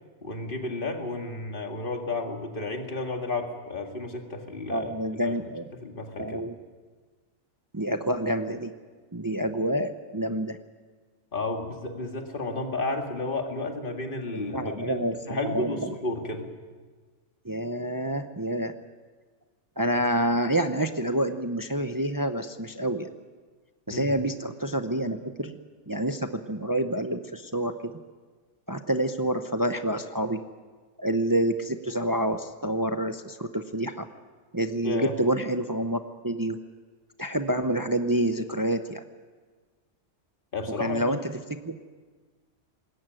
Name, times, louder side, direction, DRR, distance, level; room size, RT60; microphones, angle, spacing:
voice 1, 0.2-4.9 5.2-5.4 5.8-6.4 11.3-16.5 23.9-24.1 34.8-35.1 40.5-41.2, left 2 dB, 45° left, 3 dB, 2.3 m, -32 dB
voice 2, 4.7-5.7 6.2-6.5 7.7-8.7 9.1-10.6 14.3-15.9 17.4-18.7 19.8-23.1 23.9-25.6 25.9-28.0 28.7-30.4 31.0-34.1 34.5-36.6 37.2-39.0 40.8-41.2 41.5-41.8, right 1 dB, 20° right, 8 dB, 0.7 m, -28 dB
20.5 x 17.0 x 9.1 m, 1.4 s
omnidirectional pair, 1.2 m